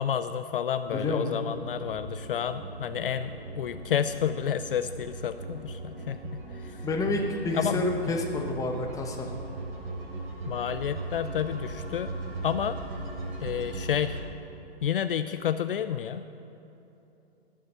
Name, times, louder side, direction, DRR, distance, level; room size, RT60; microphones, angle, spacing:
voice 1, 0.0-6.9 7.5-8.2 10.5-12.2 12.4-12.8 13.4-14.2 14.8-16.2, left 9 dB, 60° left, 11 dB, 0.5 m, -30 dB
voice 2, 0.9-1.6 6.8-9.3, left 2 dB, 10° left, 2 dB, 1.1 m, -29 dB
sound 1, 1.5-14.2, right 3 dB, 60° right, 3.0 m, -39 dB
20.0 x 7.2 x 5.8 m, 2.9 s
figure-of-eight pair, 115°, 32 cm